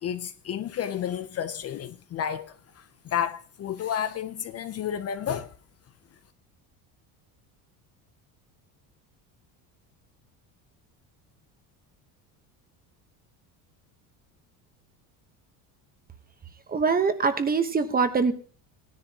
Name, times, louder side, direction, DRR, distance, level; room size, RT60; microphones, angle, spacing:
voice 1, 0.0-5.5, left 9 dB, 35° left, 0.6 m, -31 dB
voice 2, 16.7-18.3, right 5 dB, 20° right, 1.0 m, -23 dB
16.5 x 10.0 x 2.9 m
cardioid pair, 115°, 41 cm